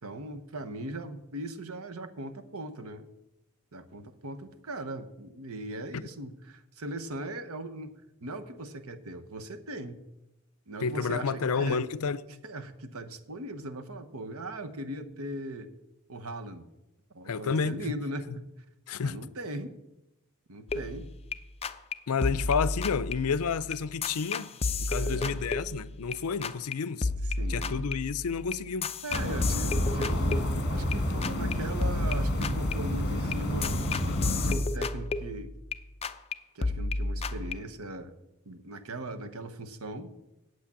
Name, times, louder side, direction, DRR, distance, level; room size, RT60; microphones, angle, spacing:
voice 1, 0.0-3.0 3.7-7.9 8.2-10.0 10.7-11.8 12.4-15.7 16.1-16.7 17.1-18.3 19.0-19.7 20.5-21.1 25.0-25.5 27.2-28.0 29.0-35.5 36.5-38.1 38.4-40.1, right 1 dB, 75° right, 1.0 m, -39 dB
voice 2, 10.8-12.4 17.3-17.8 18.9-19.2 22.1-24.5 24.8-27.1 27.5-28.9, left 5 dB, 80° left, 0.5 m, -30 dB
sound 1, 20.7-21.4 21.6-21.9 22.2-26.2 26.4-26.7 27.0-31.0 31.2-31.5 31.8-35.8 36.0-36.3 36.6-37.5, left 3 dB, 25° left, 0.5 m, -32 dB
sound 2, 29.1-34.5, left 1 dB, 50° left, 1.7 m, -30 dB
8.5 x 7.9 x 8.6 m
head